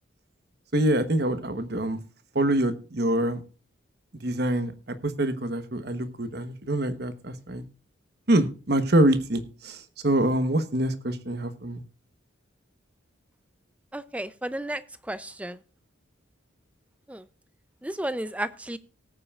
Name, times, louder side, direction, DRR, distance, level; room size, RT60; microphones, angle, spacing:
voice 1, 0.7-2.0 2.3-3.4 4.2-4.7 5.0-7.6 8.3-9.8 10.0-11.8, right 1 dB, 55° right, 10 dB, 1.1 m, -25 dB
voice 2, 13.9-14.8 15.1-15.6 17.1-17.2 17.8-18.8, right 1 dB, 5° right, 14 dB, 0.5 m, -32 dB
18.5 x 8.9 x 2.4 m, 0.35 s
head